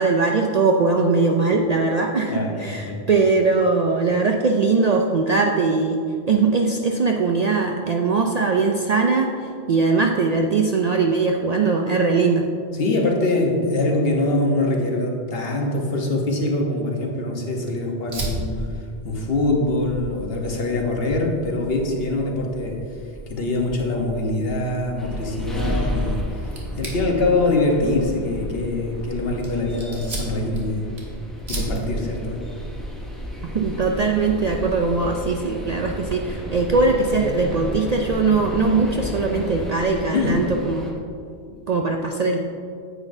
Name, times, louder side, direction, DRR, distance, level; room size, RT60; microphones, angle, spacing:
voice 1, 0.0-12.5 33.5-41.0 41.7-42.4, right 4 dB, 55° right, 2 dB, 0.4 m, -21 dB
voice 2, 2.3-3.0 12.7-18.6 19.0-22.8 23.3-30.9 31.5-32.4 40.1-40.5 41.5-41.6, left 2 dB, 65° left, 1 dB, 1.2 m, -23 dB
Fire, 18.1-36.4, right 1 dB, 75° right, 1.6 m, -36 dB
sound 1, 25.0-40.9, equal, ahead, 1.0 m, -32 dB
9.6 x 8.0 x 2.6 m, 2.4 s
omnidirectional pair, 1.1 m